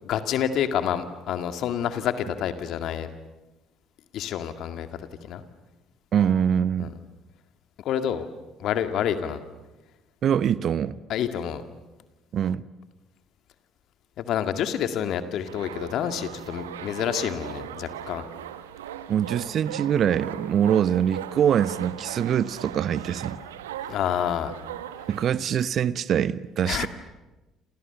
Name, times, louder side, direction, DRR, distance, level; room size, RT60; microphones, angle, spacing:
voice 1, 0.0-3.1 4.1-4.9 5.2-5.4 6.8-6.9 7.8-8.3 8.6-9.4 11.1-11.6 14.2-18.2 23.9-24.5 26.7-26.9, left 9 dB, 60° left, 2.0 m, -28 dB
voice 2, 6.1-6.9 10.2-10.9 12.3-12.6 19.1-23.4 25.1-26.9, right 9 dB, 55° right, 0.9 m, -24 dB
sound 1, 15.5-25.3, right 10 dB, 80° right, 1.1 m, -38 dB
29.0 x 28.5 x 7.0 m
hypercardioid pair, 55°, 0 cm